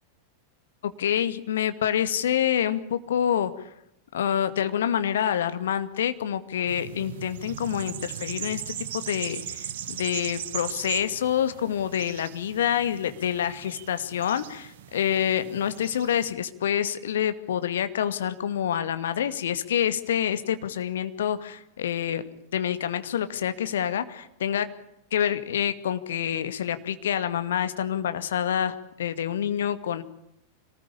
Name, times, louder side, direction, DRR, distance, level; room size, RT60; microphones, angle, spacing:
voice 1, 0.8-3.7 4.1-8.6 8.9-22.2 22.5-24.7 25.1-30.0, left 9 dB, 60° left, 10 dB, 2.2 m, -27 dB
sound 1, 6.7-16.3, right 10 dB, 55° right, 2.2 m, -38 dB
26.5 x 20.0 x 8.6 m, 0.78 s
figure-of-eight pair, 90°, 0 cm